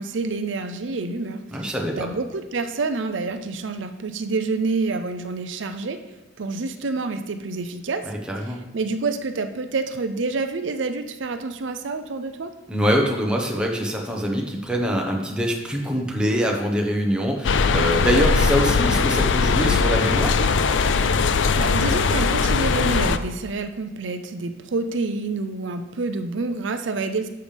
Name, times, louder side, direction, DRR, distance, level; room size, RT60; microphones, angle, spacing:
voice 1, 0.0-6.0 6.4-8.0 8.5-12.5 21.6-27.3, right 3 dB, 75° right, 8 dB, 0.5 m, -28 dB
voice 2, 1.5-2.1 8.1-8.6 12.7-20.4, equal, 5° right, 0 dB, 1.2 m, -24 dB
sound 1, 17.4-23.2, left 4 dB, 75° left, 0.5 m, -20 dB
11.5 x 6.8 x 3.4 m, 1.0 s
head